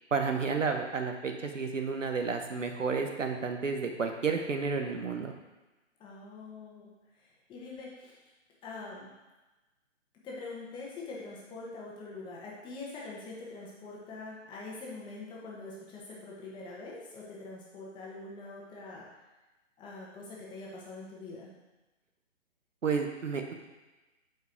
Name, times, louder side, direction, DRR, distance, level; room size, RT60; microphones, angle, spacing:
voice 1, 0.1-5.3 22.8-23.5, right 5 dB, 75° right, 4 dB, 1.2 m, -31 dB
voice 2, 6.0-6.9 7.2-8.2 8.6-9.1 10.2-19.0 19.8-21.5, left 3 dB, 10° left, -5 dB, 1.3 m, -44 dB
8.1 x 4.8 x 4.5 m, 1.1 s
figure-of-eight pair, 135°, 37 cm